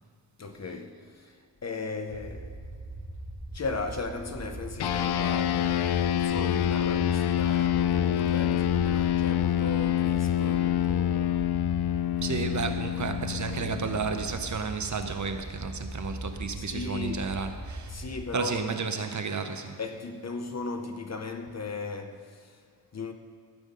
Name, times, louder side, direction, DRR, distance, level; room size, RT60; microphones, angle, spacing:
voice 1, 0.4-2.6 3.5-11.4 16.6-17.3 17.9-18.6 19.8-22.6 22.9-23.1, left 3 dB, 40° left, 0.7 m, -37 dB
sound 1, 2.1-18.3, right 2 dB, 25° right, 1.2 m, -41 dB
sound 2, 4.8-14.5, left 11 dB, 70° left, 0.5 m, -26 dB
voice 2, 12.2-18.1 18.3-19.8, right 5 dB, 45° right, 0.7 m, -32 dB
14.0 x 7.1 x 5.3 m
wide cardioid pair, 170°, 40 cm